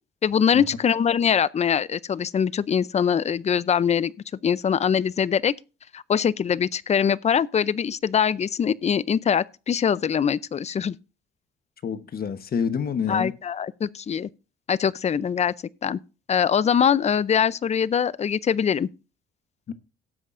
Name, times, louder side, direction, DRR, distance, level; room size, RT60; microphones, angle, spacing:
voice 1, 0.2-4.1 4.4-5.5 5.9-10.9 13.1-14.3 14.7-15.5 15.8-16.0 16.3-18.9, left 7 dB, 35° left, 0.5 m, -23 dB
voice 2, 11.8-13.3 19.7-19.8, left 6 dB, 50° left, 1.1 m, -27 dB
18.0 x 8.0 x 2.5 m
cardioid pair, 90°, 20 cm